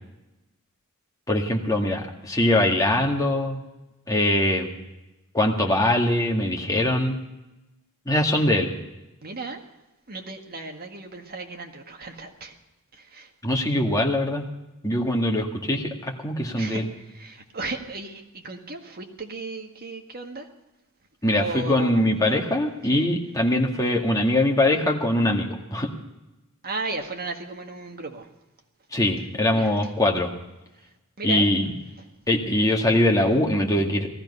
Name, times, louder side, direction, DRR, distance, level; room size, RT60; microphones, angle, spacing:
voice 1, 1.3-3.6 4.1-4.7 5.3-7.2 8.1-8.7 13.4-14.4 14.8-16.8 21.2-25.9 28.9-30.3 31.2-31.7 32.3-34.1, left 1 dB, 15° left, 1 dB, 1.9 m, -22 dB
voice 2, 9.2-9.6 10.1-12.6 12.9-13.3 16.5-20.5 21.4-22.4 22.9-23.1 26.6-28.3 29.5-29.8 31.2-31.5 32.0-32.1, right 3 dB, 45° right, 3 dB, 1.7 m, -35 dB
18.0 x 14.0 x 5.5 m, 1.0 s
head